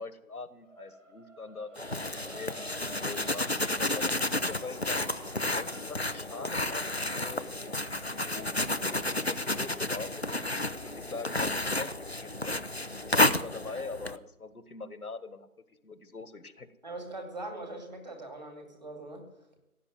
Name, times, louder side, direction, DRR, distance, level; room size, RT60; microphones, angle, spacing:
voice 1, 0.0-2.5 2.9-5.0 5.5-8.0 8.3-12.5 13.1-16.7, left 4 dB, 75° left, 12 dB, 1.7 m, -43 dB
sound 1, 0.6-10.8, right 1 dB, 50° right, 2.3 m, -53 dB
sound 2, 1.8-14.2, left 2 dB, 45° left, 0.6 m, -31 dB
voice 2, 16.8-19.2, right 2 dB, 30° right, 3 dB, 2.4 m, -41 dB
16.0 x 8.5 x 9.4 m, 0.90 s
figure-of-eight pair, 175°, 45 cm